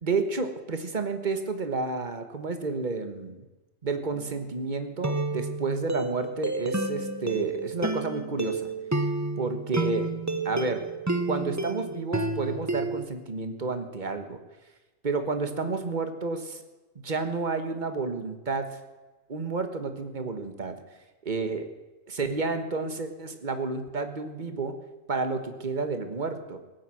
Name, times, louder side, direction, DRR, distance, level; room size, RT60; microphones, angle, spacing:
voice 1, 0.0-3.4 3.8-8.7 9.4-10.1 10.4-10.9 11.2-14.4 15.0-16.6 16.9-18.8 19.3-20.8 21.2-21.7 22.1-24.8 25.1-26.6, right 3 dB, 35° right, 8 dB, 1.5 m, -30 dB
sound 1, 4.1-4.4 5.0-13.0, right 2 dB, 15° right, 0.8 m, -30 dB
17.5 x 9.3 x 7.7 m, 1.2 s
omnidirectional pair, 1.4 m